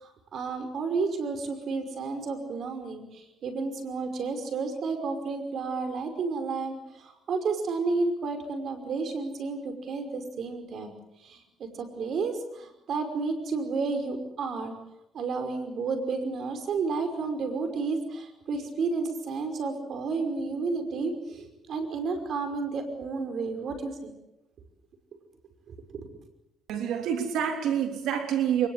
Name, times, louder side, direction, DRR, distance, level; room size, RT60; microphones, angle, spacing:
voice 1, 0.0-10.9 11.2-14.7 15.1-24.1 25.7-26.1, right 4 dB, 65° right, 7 dB, 5.5 m, -31 dB
voice 2, 26.7-28.7, right 9 dB, 85° right, 5 dB, 3.5 m, -27 dB
23.5 x 21.5 x 8.1 m, 0.86 s
cardioid pair, 90°, 0 cm